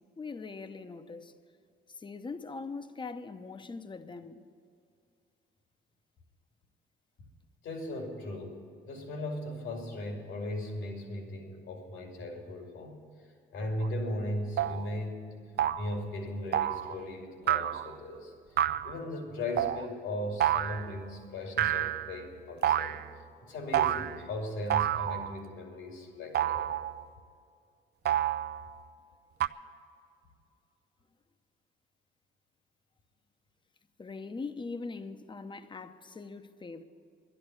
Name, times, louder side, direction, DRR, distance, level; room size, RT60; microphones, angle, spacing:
voice 1, 0.2-1.3 1.9-4.4 34.0-36.8, left 4 dB, 25° left, 0.8 m, -41 dB
voice 2, 7.6-13.1 13.5-18.3 18.8-26.6, left 1 dB, 80° left, 2.7 m, -38 dB
sound 1, 13.8-13.9 14.6-14.8 15.6-15.9 16.5-17.0 17.5-17.9 18.6-18.9 19.6-19.8 20.4-20.9 21.6-22.2 22.6-23.1 23.7-24.2 24.7-25.4 26.3-27.0 28.0-28.7 29.4-29.5, right 11 dB, 55° right, 0.5 m, -29 dB
11.0 x 11.0 x 9.6 m
cardioid pair, 90°, 20 cm